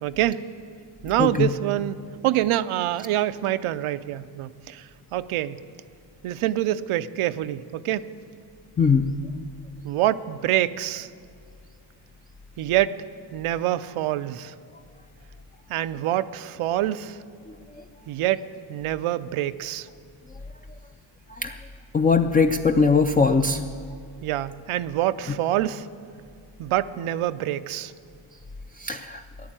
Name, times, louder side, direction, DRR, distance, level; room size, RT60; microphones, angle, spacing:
voice 1, 0.0-0.4 1.0-2.0 2.2-4.8 5.1-5.6 6.2-8.1 9.8-11.1 12.6-12.9 13.3-14.5 15.7-17.2 18.1-19.9 24.2-25.9 26.6-27.9, right 13 dB, 90° right, 13 dB, 0.6 m, -26 dB
voice 2, 1.2-1.5 8.8-9.1 21.4-21.5 21.9-23.6 28.8-29.2, left 4 dB, 20° left, 6 dB, 0.3 m, -20 dB
13.5 x 11.0 x 8.9 m, 2.2 s
cardioid pair, 145°, 49 cm